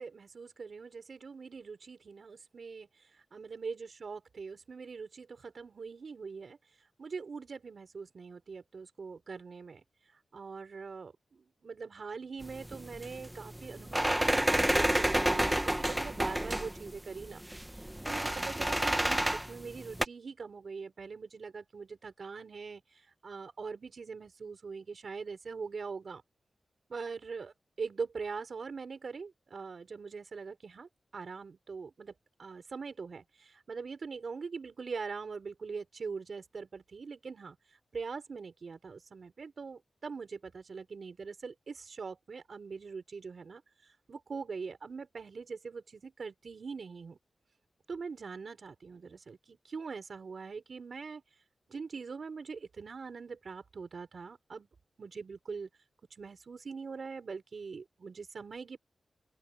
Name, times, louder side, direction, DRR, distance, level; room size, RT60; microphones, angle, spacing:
voice 1, 0.0-26.2 26.9-32.1 32.4-47.2 47.9-51.2 51.7-54.7 55.0-55.7 56.1-58.8, right 5 dB, 55° right, 5.8 m, -43 dB
sound 1, 12.4-20.0, right 1 dB, 5° right, 1.1 m, -30 dB
open air
wide cardioid pair, 130°, 0 cm